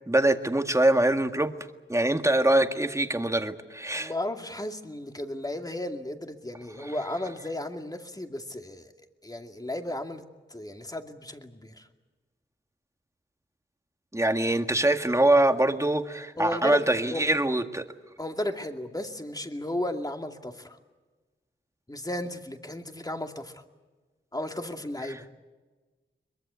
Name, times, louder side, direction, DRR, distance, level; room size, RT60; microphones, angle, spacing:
voice 1, 0.1-1.5 1.9-4.1 14.1-17.8 25.1-25.2, right 1 dB, 15° right, 1.8 m, -23 dB
voice 2, 3.9-8.9 9.2-10.2 10.5-11.9 16.4-17.6 18.2-20.8 21.9-23.6 24.3-25.3, left 1 dB, 20° left, 2.4 m, -34 dB
23.0 x 22.5 x 8.2 m
wide cardioid pair, 65°, 21 cm